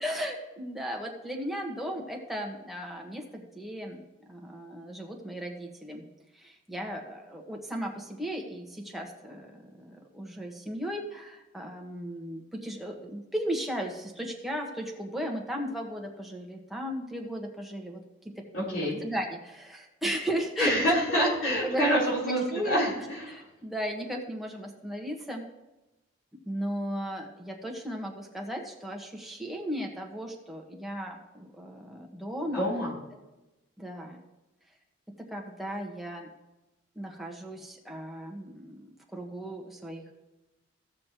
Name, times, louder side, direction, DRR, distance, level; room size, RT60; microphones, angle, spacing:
voice 1, 0.0-6.1 6.3-18.0 18.6-18.8 19.0-20.7 21.1-21.9 22.5-22.8 23.3-25.4 26.5-32.7 33.8-34.2 35.3-36.3 36.9-40.1, equal, ahead, -1 dB, 1.3 m, -36 dB
voice 2, 18.5-19.0 20.6-23.4 32.5-32.9, equal, 85° left, -5 dB, 3.6 m, -27 dB
16.0 x 6.3 x 3.0 m, 1.0 s
head